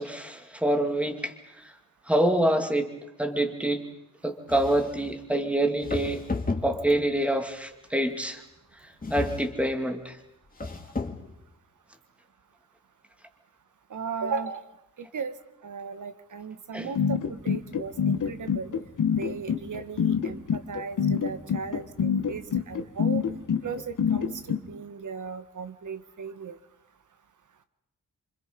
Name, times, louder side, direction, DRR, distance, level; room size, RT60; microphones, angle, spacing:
voice 1, 0.0-1.3 2.1-2.9 3.2-3.8 4.2-6.2 6.6-8.4 9.1-10.2 16.7-16.9, right 1 dB, 5° right, 4 dB, 2.5 m, -26 dB
sound 1, 4.5-5.1 5.8-7.2 9.0-9.7 10.5-11.3, left 3 dB, 25° left, 2.3 m, -33 dB
voice 2, 13.9-14.6 15.1-15.3 15.6-17.2 17.4-18.7 19.2-23.2 23.6-26.6, right 5 dB, 65° right, 10 dB, 1.5 m, -36 dB
sound 2, 17.0-24.6, left 7 dB, 70° left, 1.6 m, -25 dB
28.5 x 25.5 x 5.4 m, 0.88 s
wide cardioid pair, 115°, 32 cm